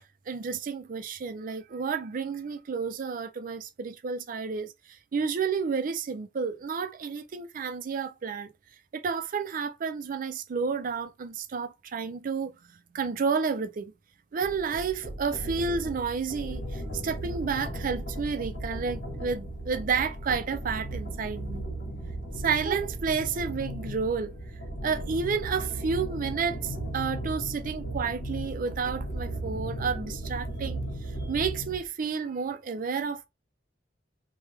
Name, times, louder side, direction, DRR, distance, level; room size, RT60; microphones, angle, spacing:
voice 1, 0.3-4.7 5.1-8.5 8.9-13.9 14.3-21.6 22.4-24.3 24.8-30.8 31.2-33.3, right 5 dB, 50° right, 0.4 m, -31 dB
sound 1, 14.4-31.8, right 1 dB, 55° left, 1.0 m, -36 dB
3.3 x 2.1 x 3.2 m
head